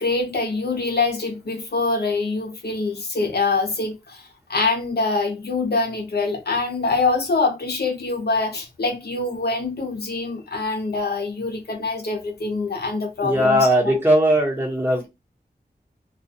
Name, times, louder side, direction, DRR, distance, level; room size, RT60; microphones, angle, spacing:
voice 1, 0.0-14.0, left 3 dB, 75° left, 0.7 m, -24 dB
voice 2, 13.2-15.1, equal, 15° right, 1.1 m, -19 dB
2.3 x 2.2 x 2.7 m
wide cardioid pair, 65°, 17 cm